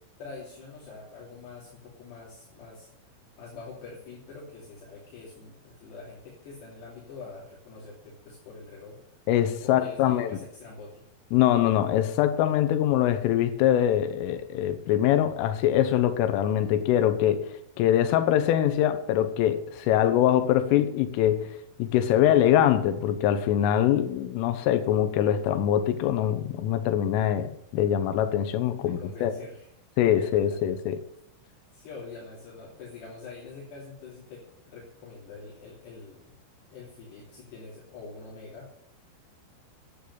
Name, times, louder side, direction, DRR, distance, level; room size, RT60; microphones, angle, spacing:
voice 1, 0.2-2.9 3.4-9.0 9.6-11.0 28.8-29.7 30.0-30.6 31.7-36.3 36.7-38.7, left 4 dB, 60° left, 4.8 m, -45 dB
voice 2, 9.3-10.3 11.3-29.3 30.0-31.0, left 11 dB, 90° left, 3.5 m, -23 dB
12.0 x 8.6 x 8.0 m
omnidirectional pair, 5.6 m